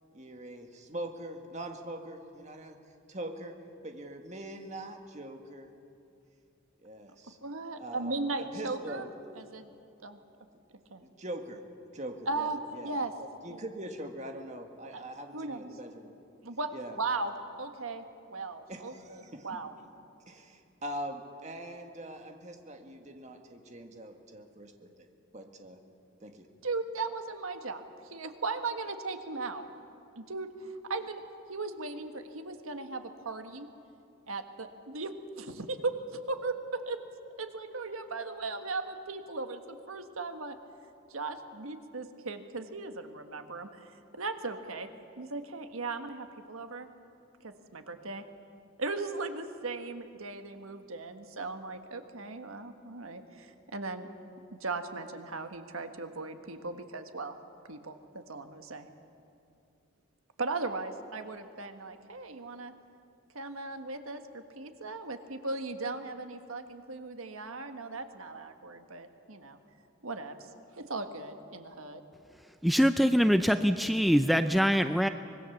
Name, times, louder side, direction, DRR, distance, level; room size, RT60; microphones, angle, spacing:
voice 1, 0.1-2.8 3.1-3.5 3.8-5.7 6.8-7.4 7.8-9.1 11.0-11.6 11.9-16.1 16.7-17.0 18.7-19.5 20.3-25.1 25.3-25.8 26.2-26.5, right 1 dB, 35° right, 4 dB, 1.8 m, -42 dB
voice 2, 7.4-9.1 9.3-9.7 10.0-10.2 10.9-11.0 12.3-13.1 13.5-13.6 14.9-15.0 15.3-15.6 16.4-16.7 17.0-17.3 17.6-19.7 26.6-29.7 30.1-31.2 31.5-33.7 34.3-35.9 36.3-37.0 37.4-40.6 41.1-44.9 45.2-46.9 47.4-48.2 48.8-54.1 54.5-57.4 57.7-58.9 60.4-62.7 63.3-69.6 70.0-70.4 70.8-72.0, right 3 dB, 85° right, 7 dB, 1.5 m, -37 dB
voice 3, 72.6-75.1, equal, ahead, 8 dB, 0.4 m, -24 dB
25.0 x 20.5 x 7.2 m, 2.6 s
head